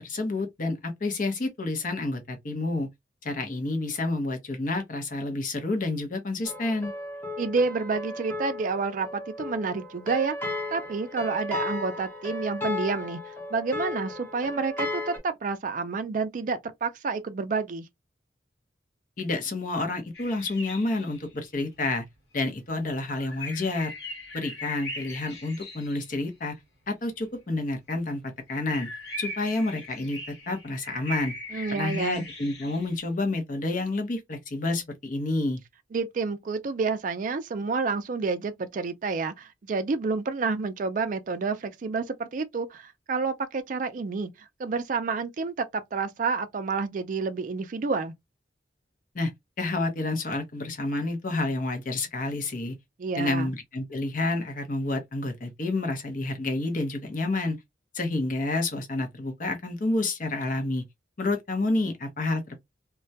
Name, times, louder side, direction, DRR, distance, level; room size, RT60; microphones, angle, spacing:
voice 1, 0.0-2.9 3.2-6.9 19.2-22.0 22.3-23.9 24.3-26.5 26.9-28.2 28.5-28.9 29.2-30.2 30.5-31.3 31.7-35.6 49.1-49.3 49.6-52.7 53.2-57.6 57.9-60.8 61.2-62.6, left 2 dB, 45° left, 0.7 m, -29 dB
sound 1, 6.4-15.2, left 2 dB, 10° left, 0.8 m, -35 dB
voice 2, 7.4-17.9 31.5-32.3 35.9-48.1 53.0-53.5, right 4 dB, 45° right, 0.4 m, -29 dB
sound 2, 20.1-21.4 23.1-26.2 28.5-33.0, left 1 dB, 70° left, 1.1 m, -40 dB
2.2 x 2.1 x 2.6 m
head